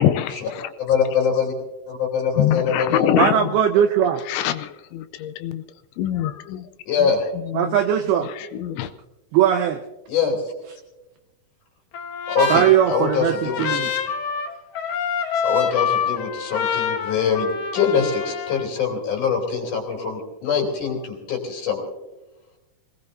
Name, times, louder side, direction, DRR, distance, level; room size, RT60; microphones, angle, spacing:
voice 1, 0.0-0.7 2.4-3.5 4.3-5.6 6.0-6.7 7.5-7.8 8.3-8.9, left 11 dB, 80° left, 11 dB, 2.9 m, -24 dB
voice 2, 0.8-1.5 1.9-3.1 6.9-7.2 10.1-10.4 12.3-13.9 15.4-21.9, left 6 dB, 45° left, 0 dB, 3.7 m, -23 dB
voice 3, 3.2-4.2 7.5-8.3 9.3-9.8 12.5-13.9, right 9 dB, 90° right, 6 dB, 2.2 m, -19 dB
Trumpet, 11.9-18.7, left 7 dB, 65° left, 2.2 m, -26 dB
25.5 x 19.0 x 2.7 m, 1.0 s
omnidirectional pair, 5.4 m